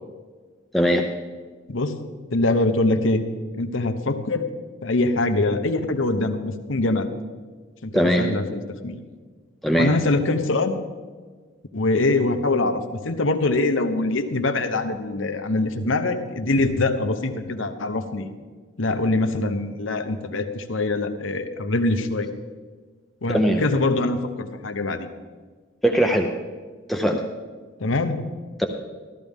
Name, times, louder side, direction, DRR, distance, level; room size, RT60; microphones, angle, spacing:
voice 1, 0.7-1.1 7.9-8.3 9.6-9.9 23.3-23.6 25.8-26.3 26.9-27.2 28.6-28.7, equal, ahead, 2 dB, 0.6 m, -20 dB
voice 2, 2.3-3.2 3.6-4.5 4.8-7.1 7.8-9.0 9.8-10.8 11.7-18.3 18.8-22.3 23.2-25.1 27.8-28.2, left 2 dB, 80° left, 7 dB, 1.0 m, -23 dB
14.0 x 13.5 x 3.6 m, 1.5 s
head